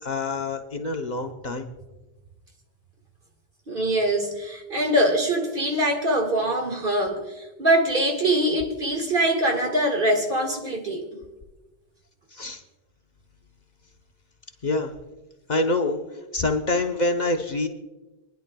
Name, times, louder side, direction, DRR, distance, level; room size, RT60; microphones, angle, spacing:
voice 1, 0.0-1.7 12.3-12.6 14.6-14.9 15.5-16.0 16.3-17.7, left 2 dB, 45° left, 0.9 m, -26 dB
voice 2, 3.7-7.2 7.6-11.1, right 1 dB, 60° right, 2.0 m, -23 dB
25.5 x 10.5 x 2.3 m
omnidirectional pair, 1.0 m